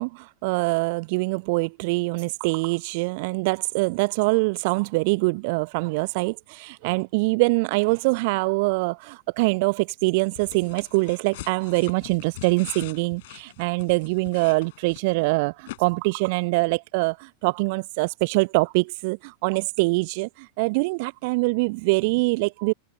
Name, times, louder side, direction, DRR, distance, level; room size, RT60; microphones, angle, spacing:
voice 1, 0.0-22.7, right 27 dB, 45° right, 0.6 m, -24 dB
sound 1, 10.4-15.3 15.7-15.8, left 19 dB, 50° left, 7.0 m, -42 dB
figure-of-eight pair, 90°, 0 cm